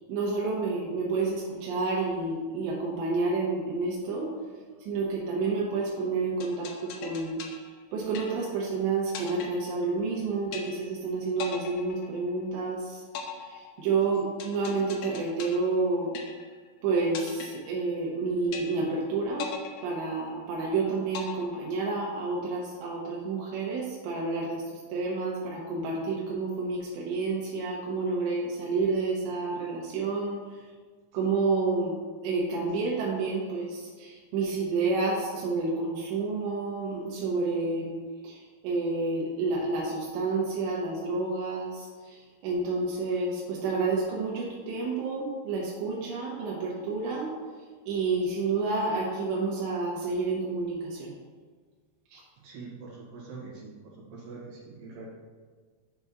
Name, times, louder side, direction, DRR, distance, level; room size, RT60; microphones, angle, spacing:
voice 1, 0.1-4.3 4.8-7.4 7.9-13.0 13.3-16.1 16.8-19.5 19.8-30.4 31.1-38.0 38.2-47.3 47.9-51.1 52.1-52.2, right 3 dB, 90° right, -4 dB, 3.1 m, -29 dB
sound 1, 6.4-8.7 9.1-10.2 10.5-11.1 11.4-12.7 13.2-16.7 17.2-18.2 18.5-19.1 19.4-20.7 21.1-22.2, left 7 dB, 80° left, 2.7 m, -40 dB
voice 2, 52.4-55.1, right 3 dB, 60° right, -5 dB, 3.1 m, -44 dB
8.3 x 3.6 x 5.6 m, 1.5 s
omnidirectional pair, 4.8 m